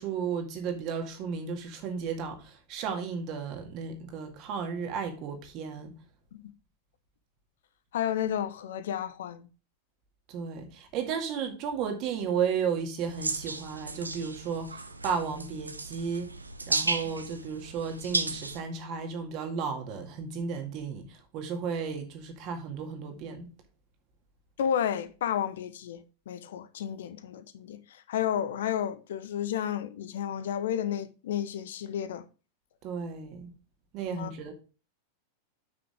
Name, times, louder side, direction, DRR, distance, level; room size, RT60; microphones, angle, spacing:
voice 1, 0.0-5.9 10.3-16.3 16.7-23.5 32.8-33.5 33.9-34.5, right 6 dB, 40° right, 2.0 m, -34 dB
voice 2, 7.9-9.5 24.6-32.2 34.1-34.3, left 9 dB, 60° left, 0.8 m, -32 dB
sound 1, 13.0-18.6, right 3 dB, 80° right, 0.7 m, -34 dB
8.8 x 6.1 x 3.4 m
figure-of-eight pair, 90°, 0 cm